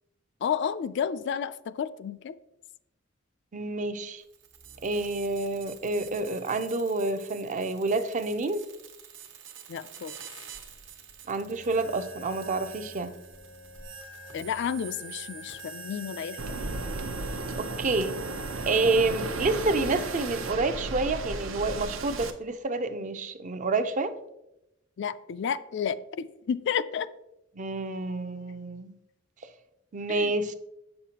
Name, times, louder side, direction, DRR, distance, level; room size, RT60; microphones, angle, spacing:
voice 1, 0.4-2.3 9.7-10.2 14.3-16.6 19.8-20.0 25.0-27.1 30.1-30.3, left 7 dB, 60° left, 0.3 m, -31 dB
voice 2, 3.5-4.2 4.8-8.6 11.3-13.1 17.6-18.2 18.7-24.1 27.5-29.0 29.9-30.5, right 3 dB, 40° right, 0.5 m, -28 dB
sound 1, 4.2-20.5, right 4 dB, 65° right, 1.1 m, -44 dB
Waves surf, 16.4-22.3, right 3 dB, 85° right, 0.7 m, -35 dB
8.1 x 6.5 x 2.8 m
head